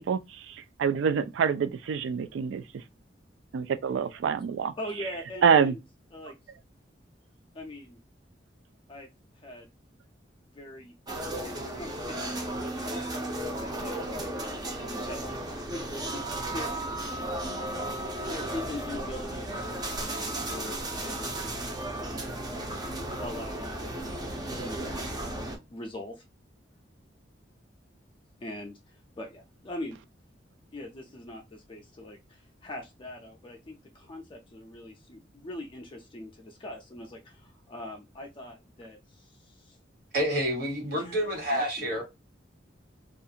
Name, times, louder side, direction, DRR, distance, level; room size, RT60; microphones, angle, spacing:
voice 1, 0.8-2.6 3.5-4.7 5.4-5.7, right 6 dB, 85° right, 0.3 m, -25 dB
voice 2, 4.8-5.8 6.1-6.4 7.5-8.0 8.9-9.7 10.5-15.4 16.1-16.7 18.2-22.0 23.2-25.0 25.7-26.2 28.4-30.0 30.7-39.8 40.9-41.2 41.5-42.0, left 1 dB, 30° left, 0.4 m, -42 dB
sound 1, 11.1-25.6, right 1 dB, 20° right, 0.5 m, -34 dB
voice 3, 40.1-42.0, equal, 55° right, 1.3 m, -28 dB
2.4 x 2.4 x 2.7 m
head